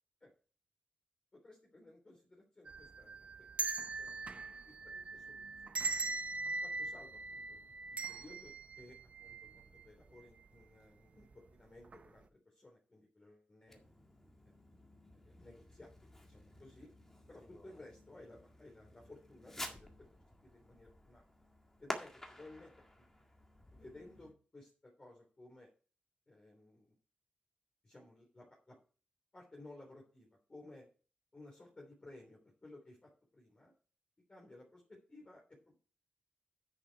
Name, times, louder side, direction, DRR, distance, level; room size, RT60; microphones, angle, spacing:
voice 1, 1.3-3.5 3.8-4.4 4.6-5.8 6.6-13.8 14.4-14.5 15.1-16.9 17.3-21.2 21.8-23.1 23.7-25.7 26.3-26.9 27.8-28.8 29.3-30.9 31.3-33.7 34.3-35.8, left 2 dB, 30° left, -2 dB, 3.3 m, -57 dB
sound 1, 2.7-9.8 10.2-10.3 11.2-11.5 11.9-12.0, right 3 dB, 45° right, 0.8 m, -41 dB
Fireworks, 13.7-24.3, left 1 dB, 10° left, 1.9 m, -51 dB
10.0 x 7.1 x 4.6 m, 0.38 s
wide cardioid pair, 115°, 3 cm